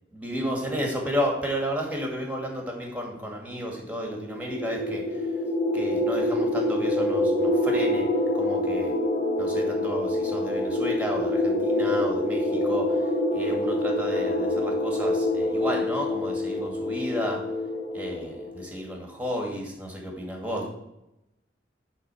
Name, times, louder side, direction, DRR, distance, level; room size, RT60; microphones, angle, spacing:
voice 1, 0.1-5.3 5.7-8.0 8.3-8.9 9.4-13.0 13.3-17.4 17.9-20.7, equal, 10° right, 1 dB, 2.0 m, -32 dB
sound 1, 4.3-18.6, left 1 dB, 25° left, 2.1 m, -26 dB
10.0 x 4.0 x 5.7 m, 0.85 s
head